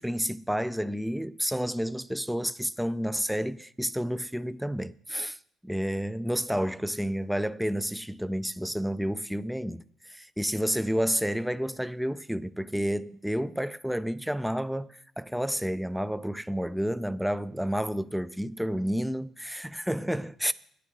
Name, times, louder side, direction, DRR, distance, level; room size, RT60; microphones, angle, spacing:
voice 1, 0.0-5.4 5.6-9.8 10.1-20.5, equal, ahead, 0.4 m, -30 dB
10.0 x 6.9 x 7.7 m
figure-of-eight pair, 45°, 0 cm